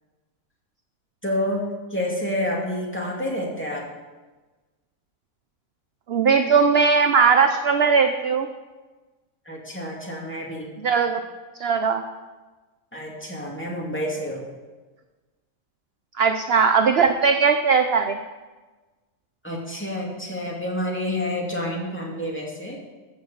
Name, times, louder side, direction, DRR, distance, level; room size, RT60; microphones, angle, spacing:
voice 1, 1.2-1.6 1.9-3.9 9.5-10.7 12.9-14.4 19.4-22.8, left 1 dB, 10° left, -4 dB, 2.5 m, -28 dB
voice 2, 6.1-8.5 10.8-11.2 11.6-12.0 16.2-18.2, right 5 dB, 55° right, 7 dB, 0.8 m, -19 dB
14.0 x 6.5 x 7.1 m, 1.2 s
omnidirectional pair, 1.5 m